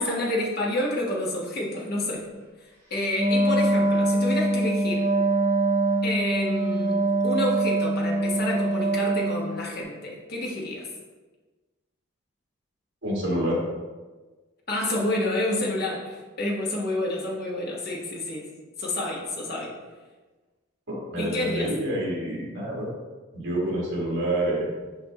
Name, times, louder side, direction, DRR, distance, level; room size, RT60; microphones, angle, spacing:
voice 1, 0.0-2.3 2.9-5.0 6.0-7.0 7.2-10.9 14.7-18.5 18.8-19.7 21.2-21.7, left 1 dB, 50° left, -3 dB, 1.3 m, -29 dB
Wind instrument woodwind instrument, 3.1-9.6, right 2 dB, 15° right, 2.0 m, -23 dB
voice 2, 13.0-13.6 20.9-22.9 23.3-24.7, right 1 dB, 70° right, -5 dB, 1.9 m, -27 dB
6.0 x 5.9 x 3.0 m, 1.3 s
head